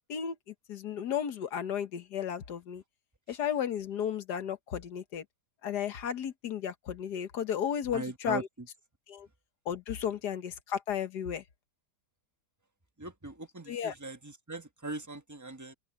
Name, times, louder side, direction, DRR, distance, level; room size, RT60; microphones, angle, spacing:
voice 1, 0.1-2.8 3.3-5.3 5.6-8.5 9.1-9.3 9.7-11.4 13.7-14.0, left 8 dB, 90° left, 1.8 m, -34 dB
voice 2, 7.9-8.4 13.0-15.7, right 2 dB, 15° right, 1.0 m, -40 dB
omnidirectional pair, 1.7 m